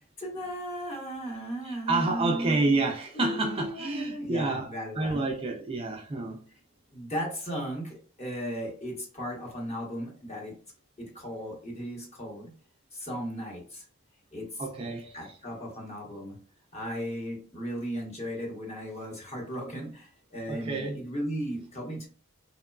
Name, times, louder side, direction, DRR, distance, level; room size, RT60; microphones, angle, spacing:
voice 1, 0.2-2.6 3.1-5.2 6.9-10.6 11.0-12.5 12.9-13.8 14.3-14.7 15.1-16.4 16.7-22.1, equal, 30° left, 1.0 m, -36 dB
voice 2, 1.6-4.7 5.0-6.4 14.6-15.2 20.5-21.0, right 3 dB, 25° right, 0.3 m, -29 dB
2.9 x 2.2 x 2.3 m
head